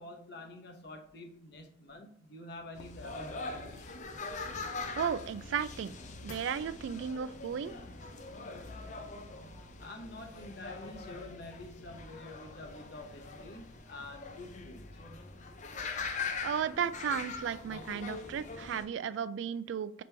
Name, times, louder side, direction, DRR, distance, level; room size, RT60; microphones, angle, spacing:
voice 1, 0.0-4.2 9.8-14.8, left 2 dB, 60° left, 4 dB, 0.8 m, -48 dB
sound 1, 2.7-18.9, left 4 dB, 40° left, 0.5 m, -42 dB
voice 2, 5.0-5.9 6.2-7.7 16.4-20.0, right 7 dB, 75° right, 14 dB, 0.3 m, -34 dB
5.2 x 2.9 x 3.3 m, 0.68 s
head